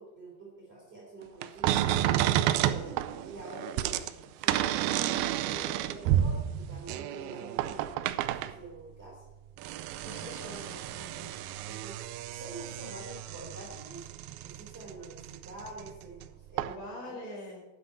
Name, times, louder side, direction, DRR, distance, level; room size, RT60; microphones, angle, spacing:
voice 1, 0.0-1.8 2.6-4.6 5.2-9.2 11.7-14.1 14.4-17.4, right 2 dB, 15° right, -5 dB, 3.0 m, -47 dB
sound 1, 1.4-8.6 9.3-16.3 16.5-16.8, right 12 dB, 80° right, 2.3 m, -31 dB
voice 2, 10.0-11.4 16.6-17.6, left 2 dB, 80° left, -3 dB, 7.0 m, -44 dB
12.0 x 9.6 x 4.5 m, 1.2 s
omnidirectional pair, 4.8 m